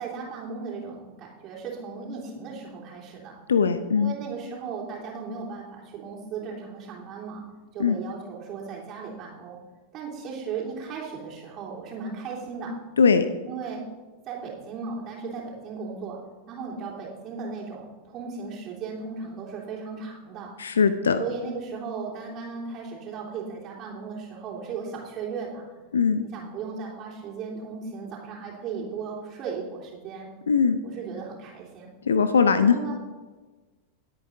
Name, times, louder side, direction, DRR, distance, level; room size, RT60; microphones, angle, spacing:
voice 1, 0.0-3.4 3.9-7.4 7.7-9.6 9.9-12.7 13.4-13.8 14.3-16.2 16.5-20.5 21.2-25.6 26.2-30.3 30.8-31.9 32.5-33.0, right 5 dB, 35° right, -4 dB, 3.3 m, -36 dB
voice 2, 3.5-4.1 7.8-8.0 13.0-13.3 20.6-21.2 25.9-26.2 30.5-30.8 32.1-32.8, left 6 dB, 70° left, 12 dB, 0.5 m, -20 dB
20.0 x 8.6 x 2.6 m, 1.3 s
figure-of-eight pair, 90°, 0 cm